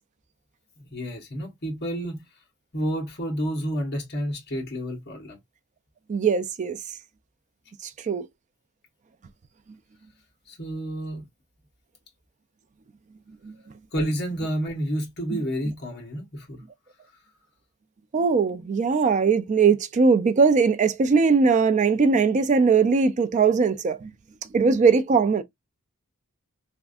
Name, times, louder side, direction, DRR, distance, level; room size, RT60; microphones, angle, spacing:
voice 1, 0.8-2.2 2.7-5.4 10.5-11.3 13.9-16.6, equal, 50° left, 1.3 m, -30 dB
voice 2, 6.1-6.8 8.1-8.3 18.1-24.1 24.5-25.4, right 5 dB, 35° right, 0.3 m, -20 dB
3.4 x 2.5 x 2.4 m
head